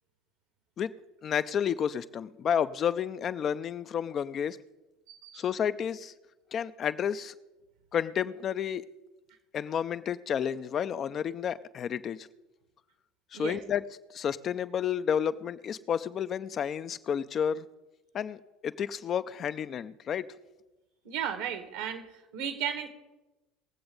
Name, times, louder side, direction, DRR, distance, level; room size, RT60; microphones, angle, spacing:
voice 1, 1.2-4.6 5.3-6.1 6.5-7.3 7.9-8.9 9.5-12.3 13.3-13.8 14.1-17.6 18.1-20.3, left 8 dB, 45° left, 0.6 m, -31 dB
voice 2, 5.1-5.4 13.3-13.6 21.0-22.0 22.3-22.9, right 9 dB, 75° right, 2.0 m, -34 dB
20.0 x 7.7 x 4.0 m
hypercardioid pair, 75°, 0 cm